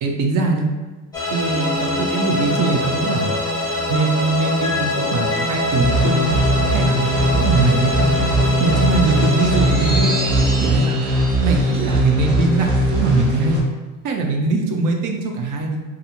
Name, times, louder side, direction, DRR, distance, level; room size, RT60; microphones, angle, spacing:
voice 1, 0.0-0.7 1.3-3.3 3.9-6.3 6.7-8.2 8.6-10.2 10.6-11.1 11.4-13.6 14.0-15.8, right 4 dB, 60° right, 2 dB, 0.5 m, -22 dB
sound 1, 1.1-12.6, left 2 dB, 10° left, 0.6 m, -24 dB
sound 2, 1.5-10.5, left 1 dB, 80° left, 0.5 m, -33 dB
sound 3, 5.8-13.6, right 1 dB, 15° right, 0.9 m, -19 dB
2.5 x 2.3 x 2.9 m, 1.3 s
cardioid pair, 130°, 36 cm